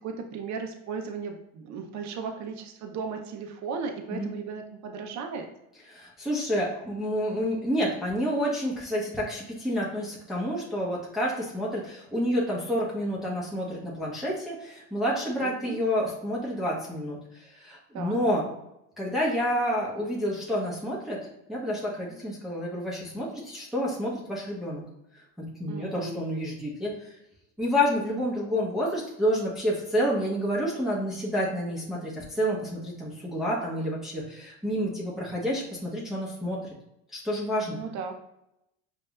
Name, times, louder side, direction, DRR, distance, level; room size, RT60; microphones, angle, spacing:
voice 1, 0.0-5.5 15.4-15.8 17.9-18.2 25.7-26.2 37.7-38.1, right 5 dB, 50° right, 4 dB, 0.8 m, -36 dB
voice 2, 5.9-18.5 19.0-21.2 21.5-24.8 25.4-26.9 27.6-36.6 37.1-37.8, equal, ahead, -6 dB, 1.2 m, -29 dB
5.3 x 2.7 x 2.4 m, 0.84 s
supercardioid pair, 85°, 36 cm